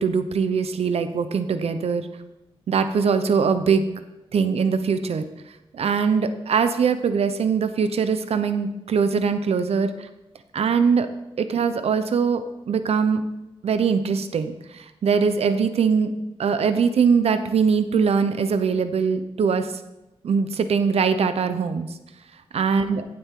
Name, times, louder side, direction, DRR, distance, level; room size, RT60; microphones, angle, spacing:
voice 1, 0.0-2.1 2.7-3.8 4.3-5.3 5.7-10.1 10.5-11.1 11.4-13.2 13.6-16.1 16.4-19.7 20.2-22.0 22.5-23.0, right 6 dB, 85° right, 10 dB, 0.8 m, -22 dB
15.0 x 7.7 x 3.7 m, 0.98 s
wide cardioid pair, 105°, 10 cm